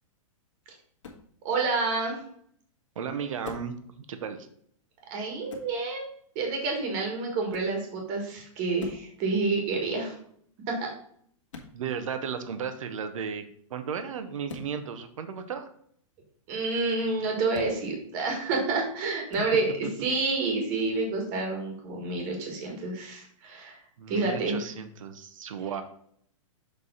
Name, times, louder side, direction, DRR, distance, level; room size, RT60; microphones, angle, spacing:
sound 1, 1.0-1.3 3.4-3.8 5.5-5.7 7.5-7.8 8.8-9.1 11.5-11.7 14.5-14.7 17.5-17.8 19.3-19.5, left 4 dB, 65° left, 1.7 m, -42 dB
voice 1, 1.4-2.2 5.1-10.2 10.7-10.9 16.5-19.7 20.0-23.8 24.1-24.6, right 3 dB, 25° right, 1 dB, 1.6 m, -29 dB
voice 2, 2.9-4.5 11.7-13.4 13.7-15.7 19.4-19.5 24.0-25.8, right 7 dB, 70° right, 9 dB, 1.0 m, -35 dB
6.9 x 3.5 x 5.5 m, 0.63 s
hypercardioid pair, 175°, 17 cm